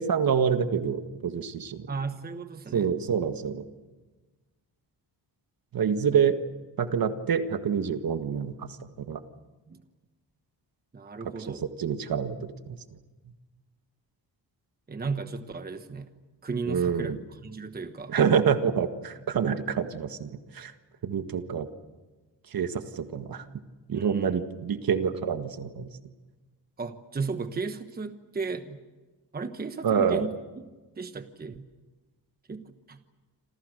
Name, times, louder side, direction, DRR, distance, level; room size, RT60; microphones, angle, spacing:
voice 1, 0.0-1.9 2.7-3.6 5.7-6.3 6.8-9.2 11.5-12.4 12.7-12.8 16.7-17.2 18.1-20.7 21.0-21.7 22.5-23.4 23.9-25.9 29.8-30.3, right 7 dB, 55° right, 8 dB, 1.8 m, -27 dB
voice 2, 1.9-2.9 9.7-9.8 10.9-11.6 14.9-16.1 16.4-18.1 23.9-24.4 26.8-28.8 29.3-30.7 31.0-31.7 32.5-33.0, right 4 dB, 20° right, 9 dB, 1.2 m, -35 dB
28.0 x 27.0 x 6.6 m, 1.3 s
cardioid pair, 135°, 42 cm